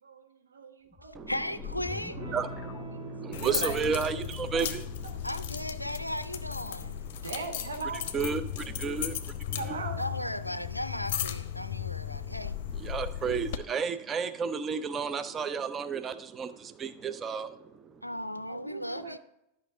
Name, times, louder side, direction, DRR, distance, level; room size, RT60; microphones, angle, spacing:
voice 1, 0.0-1.3 3.4-3.8 7.2-8.0 9.6-10.0 18.5-19.2, right 4 dB, 70° right, 1.1 m, -38 dB
sound 1, 0.9-3.6, left 6 dB, 15° left, 0.8 m, -44 dB
voice 2, 1.0-2.2 5.2-7.0 10.0-12.6 18.0-19.2, left 1 dB, 90° left, 0.4 m, -36 dB
voice 3, 1.8-5.2 6.9-7.3 8.1-9.7 12.1-12.4 12.7-18.0, right 6 dB, 25° right, 0.5 m, -33 dB
Electric guitar / Strum, 2.1-10.4, equal, 50° right, 3.4 m, -45 dB
sound 2, 3.3-13.6, left 10 dB, 50° left, 0.6 m, -36 dB
11.5 x 5.6 x 3.7 m
figure-of-eight pair, 90°, 0 cm